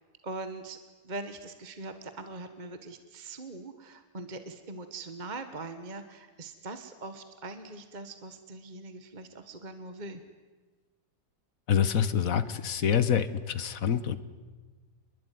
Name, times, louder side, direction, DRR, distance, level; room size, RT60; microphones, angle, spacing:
voice 1, 0.2-0.8 1.0-10.2, right 2 dB, 30° right, 9 dB, 1.6 m, -41 dB
voice 2, 11.7-14.2, left 8 dB, 60° left, 13 dB, 1.6 m, -26 dB
28.0 x 21.5 x 9.5 m, 1.4 s
omnidirectional pair, 1.7 m